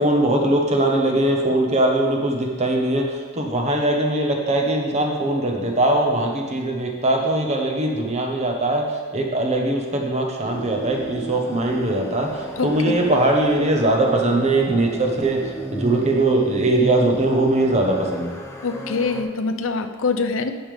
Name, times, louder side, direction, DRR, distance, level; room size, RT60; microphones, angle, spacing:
voice 1, 0.0-18.4, right 1 dB, 35° right, 1 dB, 1.2 m, -21 dB
sound 1, 10.4-19.2, equal, 15° left, 0.9 m, -33 dB
voice 2, 18.6-20.5, left 4 dB, 75° left, 8 dB, 0.6 m, -24 dB
11.0 x 6.8 x 3.5 m, 1.5 s
head